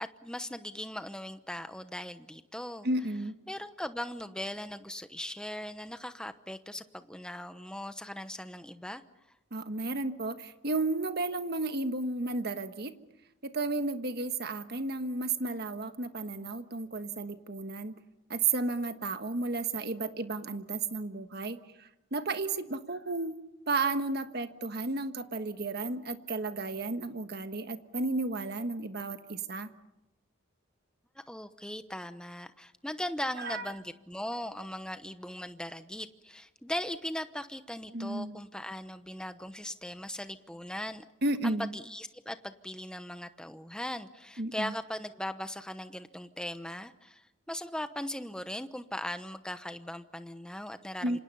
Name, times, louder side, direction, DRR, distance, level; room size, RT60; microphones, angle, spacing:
voice 1, 0.0-2.9 3.5-9.0 31.2-41.0 41.4-51.2, left 1 dB, 5° left, 10 dB, 0.9 m, -39 dB
voice 2, 2.8-3.3 9.5-12.9 13.4-17.9 18.3-23.4 23.7-29.7 33.4-33.6 37.9-38.4 41.2-41.7 44.4-44.7 51.0-51.2, right 3 dB, 50° right, 9 dB, 1.3 m, -33 dB
28.0 x 26.0 x 5.6 m, 0.97 s
head